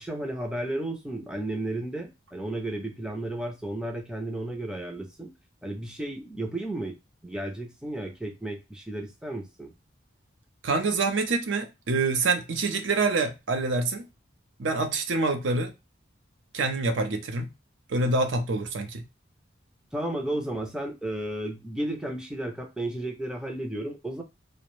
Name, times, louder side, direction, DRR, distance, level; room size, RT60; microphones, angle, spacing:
voice 1, 0.0-5.3 5.6-7.0 7.2-9.7 19.9-24.2, right 1 dB, 5° right, 0.4 m, -33 dB
voice 2, 10.6-14.1 14.6-15.7 16.5-17.5 17.9-19.0, right 3 dB, 75° right, 0.5 m, -26 dB
2.4 x 2.1 x 3.0 m
head